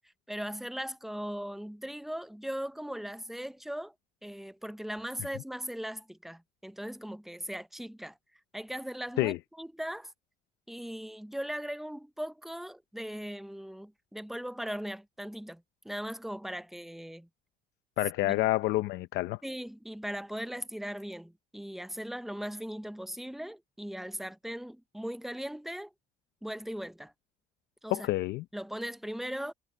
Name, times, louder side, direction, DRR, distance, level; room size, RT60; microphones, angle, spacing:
voice 1, 0.3-3.9 4.2-8.2 8.5-10.1 10.7-17.3 18.2-18.5 19.4-25.9 26.4-27.1 27.8-28.1 28.5-29.5, equal, ahead, 0.7 m, -39 dB
voice 2, 18.0-19.4 27.9-28.4, left 17 dB, 85° left, 0.7 m, -28 dB
cardioid pair, 110°, 17 cm